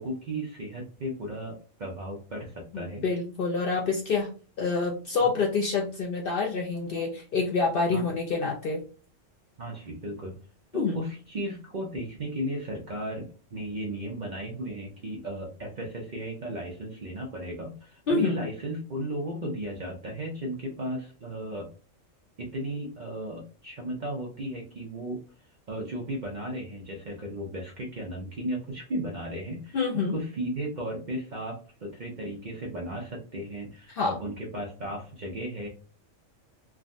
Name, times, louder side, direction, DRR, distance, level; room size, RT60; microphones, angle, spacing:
voice 1, 0.0-3.0 5.2-5.3 7.9-8.1 9.6-10.4 10.7-21.7 22.4-25.2 25.7-35.7, right 1 dB, 50° right, 0 dB, 0.5 m, -35 dB
voice 2, 2.7-4.3 4.6-8.8 10.7-11.0 18.1-18.4 29.7-30.2 33.9-34.1, left 4 dB, 65° left, 0 dB, 0.6 m, -27 dB
3.4 x 2.1 x 2.5 m, 0.38 s
omnidirectional pair, 1.3 m